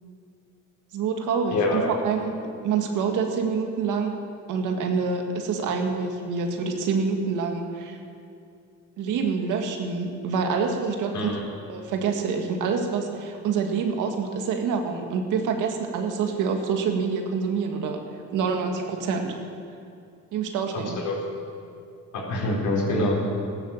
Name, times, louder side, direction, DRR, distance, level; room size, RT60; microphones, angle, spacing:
voice 1, 0.9-2.3 2.6-4.2 4.5-8.0 9.0-11.3 11.7-18.0 18.3-19.3 20.3-21.0, right 5 dB, 85° right, 3 dB, 2.0 m, -26 dB
voice 2, 1.5-1.8 11.1-11.4 21.0-21.2 22.1-23.1, left 2 dB, 75° left, -3 dB, 5.0 m, -25 dB
16.0 x 12.0 x 7.4 m, 2.5 s
cardioid pair, 90°, 30 cm